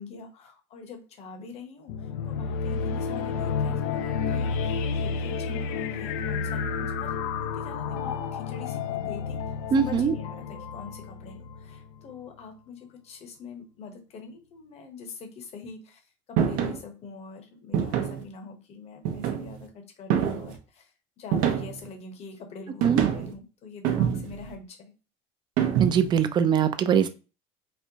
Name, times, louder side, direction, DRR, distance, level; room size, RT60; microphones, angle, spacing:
voice 1, 0.0-7.2 7.5-16.0 16.3-20.9 21.2-24.9, left 5 dB, 45° left, 5 dB, 0.9 m, -44 dB
sound 1, 1.9-12.1, left 5 dB, 80° left, 0.4 m, -31 dB
voice 2, 9.7-10.1 22.8-23.0 25.8-27.1, right 7 dB, 30° right, 10 dB, 0.4 m, -22 dB
sound 2, 16.4-16.8 17.7-18.2 19.1-19.6 20.1-20.6 21.3-21.9 22.8-23.3 23.8-24.5 25.6-26.2, right 9 dB, 75° right, 0.7 m, -26 dB
4.2 x 2.2 x 2.8 m, 0.34 s
supercardioid pair, 110°, 14 cm